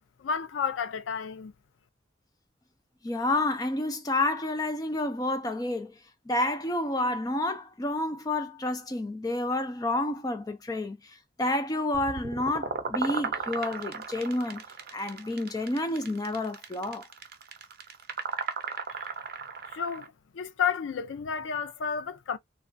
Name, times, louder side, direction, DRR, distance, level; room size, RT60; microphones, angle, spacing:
voice 1, 0.2-1.5 19.7-22.4, left 6 dB, 90° left, 0.4 m, -31 dB
voice 2, 3.0-5.9 6.3-14.6 14.9-17.1, left 2 dB, 20° left, 0.4 m, -29 dB
sound 1, 11.9-20.1, right 5 dB, 55° right, 0.6 m, -36 dB
3.0 x 2.3 x 2.5 m
head